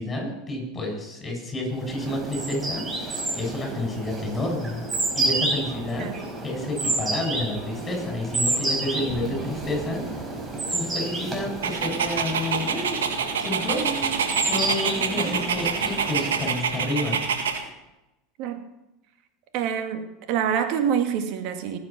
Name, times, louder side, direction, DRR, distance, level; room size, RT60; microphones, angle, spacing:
voice 1, 0.0-2.8 3.3-4.8 5.1-6.1 6.4-10.0 10.7-13.0 13.4-17.2, left 1 dB, 20° left, 1 dB, 6.9 m, -30 dB
sound 1, 1.8-16.7, right 2 dB, 25° right, 5.1 m, -30 dB
Dog, 11.6-17.6, right 6 dB, 85° right, 1.8 m, -26 dB
voice 2, 15.1-15.4 18.4-18.7 19.5-21.8, right 8 dB, 60° right, 7 dB, 2.0 m, -27 dB
19.5 x 8.0 x 6.0 m, 0.94 s
hypercardioid pair, 90°, 0 cm